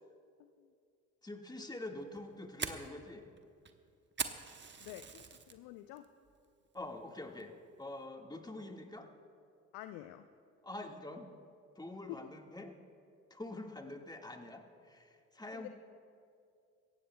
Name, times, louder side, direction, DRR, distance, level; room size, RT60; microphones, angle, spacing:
voice 1, 0.4-0.7 4.8-6.1 9.7-10.3 12.1-12.2 15.5-15.7, left 15 dB, 70° left, 10 dB, 0.6 m, -48 dB
voice 2, 1.2-3.3 6.7-9.1 10.6-11.3 11.7-12.7 13.3-15.7, left 2 dB, 10° left, 3 dB, 1.7 m, -46 dB
Fire, 2.0-5.6 6.0-6.4 6.7-6.9 7.4-7.7, right 6 dB, 30° right, 1.1 m, -42 dB
23.0 x 17.0 x 2.2 m, 2.4 s
hypercardioid pair, 50°, 36 cm